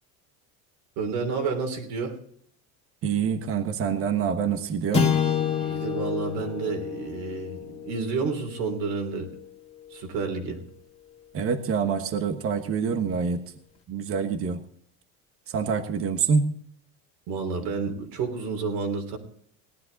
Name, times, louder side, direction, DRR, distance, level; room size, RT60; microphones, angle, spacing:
voice 1, 1.0-2.2 5.6-9.3 9.9-10.6 17.3-19.2, right 4 dB, 70° right, 3 dB, 3.4 m, -30 dB
voice 2, 3.0-5.1 11.3-13.4 13.9-14.6 15.5-16.5, right 6 dB, 35° right, 9 dB, 1.3 m, -26 dB
sound 1, 4.9-9.4, left 7 dB, 15° left, 2.3 m, -28 dB
18.5 x 11.0 x 4.0 m, 0.62 s
cardioid pair, 150°, 39 cm